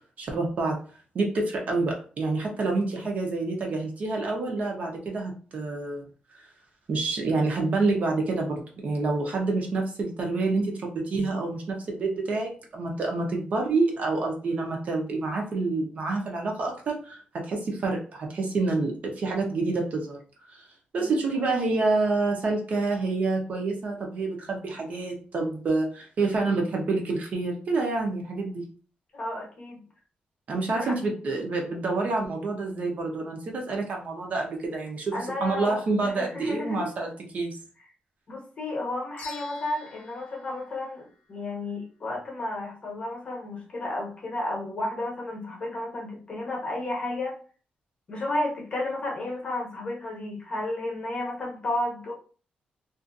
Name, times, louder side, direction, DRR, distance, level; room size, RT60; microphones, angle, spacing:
voice 1, 0.2-0.8 1.1-6.0 6.9-20.2 20.5-20.6 20.9-28.6 30.5-35.1 35.4-37.6, right 3 dB, 50° right, 1 dB, 0.7 m, -28 dB
voice 2, 20.9-21.5 29.1-29.8 30.7-31.0 35.1-36.9 38.3-47.4 48.1-52.1, left 2 dB, 35° left, 0 dB, 0.7 m, -32 dB
sound 1, 39.2-41.6, left 5 dB, 70° left, 0.6 m, -47 dB
2.5 x 2.4 x 2.5 m, 0.39 s
wide cardioid pair, 150°, 3 cm